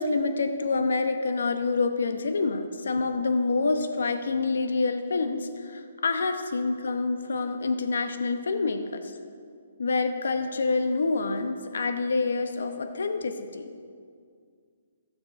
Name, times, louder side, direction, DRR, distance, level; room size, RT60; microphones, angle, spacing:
voice 1, 0.0-9.1 9.8-13.7, left 3 dB, 75° left, 7 dB, 0.9 m, -27 dB
15.0 x 7.1 x 5.2 m, 2.1 s
hypercardioid pair, 160°, 0 cm